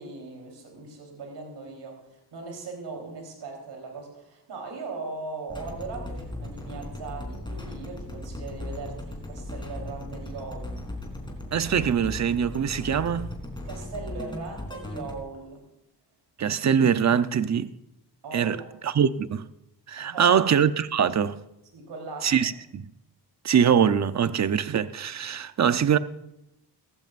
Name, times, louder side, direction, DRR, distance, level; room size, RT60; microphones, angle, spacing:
voice 1, 0.0-10.7 13.6-15.6 18.2-18.7 20.0-20.4 21.7-22.5, right 3 dB, 80° right, 3.9 m, -39 dB
sound 1, 5.5-15.2, left 1 dB, 10° left, 3.7 m, -37 dB
voice 2, 11.5-13.3 16.4-17.7 18.3-18.6 18.8-19.5 19.9-21.4 22.2-22.9 23.4-26.0, right 8 dB, 40° right, 0.7 m, -23 dB
18.0 x 15.0 x 2.6 m
cardioid pair, 80°, 41 cm